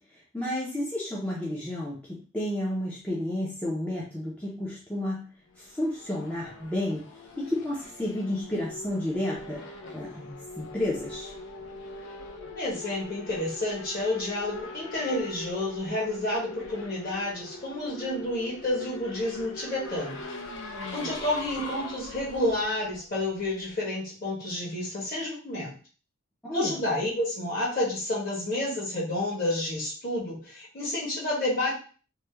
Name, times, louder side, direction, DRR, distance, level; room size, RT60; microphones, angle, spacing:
voice 1, 0.3-5.2 5.6-7.1 7.4-9.6 9.9-11.3 26.4-26.8, left 1 dB, 5° left, -6 dB, 0.6 m, -31 dB
Race car auto racing / Accelerating revving vroom, 5.5-23.7, left 2 dB, 65° left, 0.6 m, -42 dB
voice 2, 12.5-20.2 20.9-25.7 26.5-31.7, left 1 dB, 45° left, -5 dB, 1.6 m, -30 dB
3.1 x 2.2 x 3.3 m, 0.37 s
head